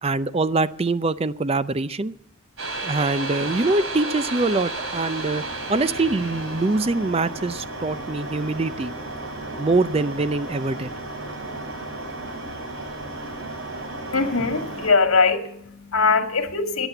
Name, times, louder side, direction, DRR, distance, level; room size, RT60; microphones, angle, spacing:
voice 1, 0.0-2.1 2.8-5.4 5.7-8.9 9.6-10.9, right 3 dB, 30° right, 0.5 m, -24 dB
sound 1, 2.6-14.9, right 2 dB, 75° right, 3.2 m, -33 dB
voice 2, 14.1-16.9, left 4 dB, 85° left, 1.9 m, -21 dB
14.0 x 9.8 x 7.9 m
head